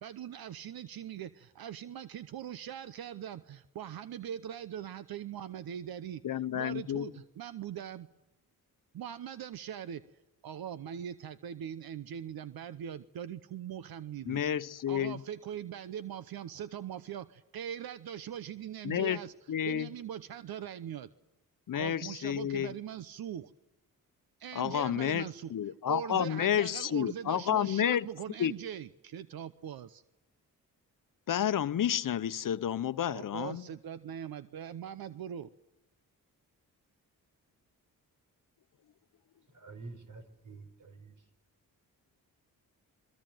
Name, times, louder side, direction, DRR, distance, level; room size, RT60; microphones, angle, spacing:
voice 1, 0.0-6.2 6.5-8.1 8.9-10.0 10.4-14.4 14.9-21.1 21.7-23.5 24.4-30.0 33.1-35.5, right 9 dB, 85° right, 0.9 m, -41 dB
voice 2, 6.2-7.1 14.3-15.2 18.8-19.2 19.5-19.9 21.7-22.7 24.5-28.1 28.4-28.5 31.3-33.6, left 10 dB, 65° left, 0.9 m, -30 dB
voice 3, 39.5-41.2, right 3 dB, 60° right, 5.1 m, -48 dB
28.5 x 22.5 x 7.7 m
cardioid pair, 80°, 36 cm